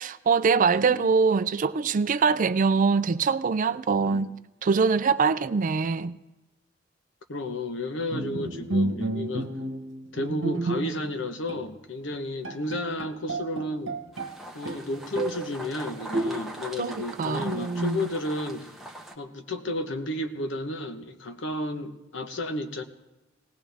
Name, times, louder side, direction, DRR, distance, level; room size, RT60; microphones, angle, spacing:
voice 1, 0.0-4.3 4.6-6.2 16.8-18.1, right 5 dB, 45° right, 0.4 m, -23 dB
voice 2, 0.7-1.1 4.0-4.3 7.3-9.5 10.1-13.9 14.5-18.7 19.2-22.8, left 1 dB, 70° left, 1.1 m, -32 dB
Bowed string instrument, 8.1-11.2 11.5-11.7 12.1-12.2 12.4-14.4 14.7-15.5 16.1-16.7, right 2 dB, 70° right, 1.1 m, -31 dB
sound 1, 14.1-19.1, right 1 dB, ahead, 1.2 m, -41 dB
19.0 x 18.0 x 3.5 m
head